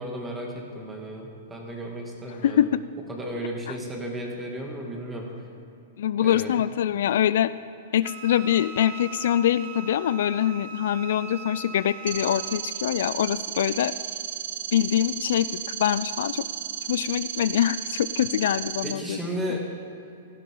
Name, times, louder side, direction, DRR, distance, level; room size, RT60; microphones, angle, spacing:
voice 1, 0.0-2.7 3.1-5.3 6.2-6.5 18.8-19.6, equal, 10° right, 0 dB, 2.4 m, -34 dB
voice 2, 2.4-2.8 6.0-7.5 7.9-13.9 14.7-16.5 16.9-19.2, left 11 dB, 70° left, 15 dB, 0.3 m, -24 dB
Wind instrument woodwind instrument, 8.0-12.7, right 7 dB, 45° right, 0.8 m, -41 dB
sound 1, 12.1-18.9, right 9 dB, 75° right, 0.9 m, -34 dB
16.0 x 12.5 x 3.9 m, 2.8 s
hypercardioid pair, 125°, 0 cm